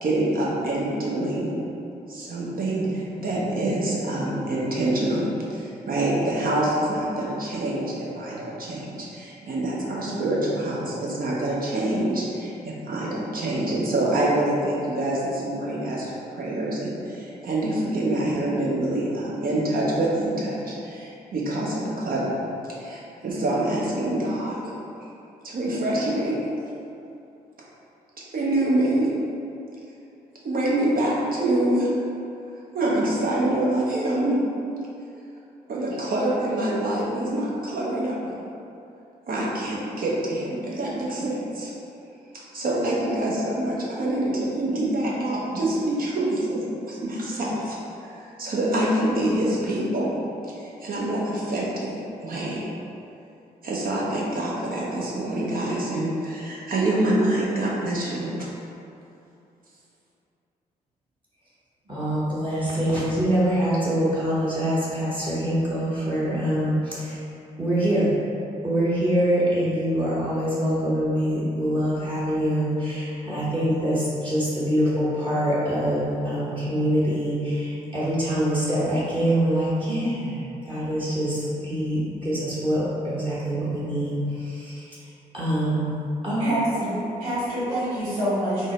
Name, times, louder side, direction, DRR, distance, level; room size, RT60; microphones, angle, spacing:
voice 1, 0.0-1.5 2.1-22.4 22.8-24.7 25.4-26.4 28.3-29.1 30.4-31.9 32.7-34.4 35.7-38.2 39.3-41.7 42.3-48.1 48.4-50.2 50.4-51.9 52.2-52.6 53.6-58.3, right 1 dB, 50° right, -5 dB, 1.0 m, -26 dB
voice 2, 61.9-67.2 67.6-68.1 68.6-85.0 85.3-85.9 86.2-86.5 86.8-86.9, equal, 25° right, -9 dB, 1.1 m, -24 dB
voice 3, 86.4-88.7, right 1 dB, 85° right, -11 dB, 1.2 m, -26 dB
3.8 x 2.1 x 3.7 m, 2.8 s
hypercardioid pair, 45°, 19 cm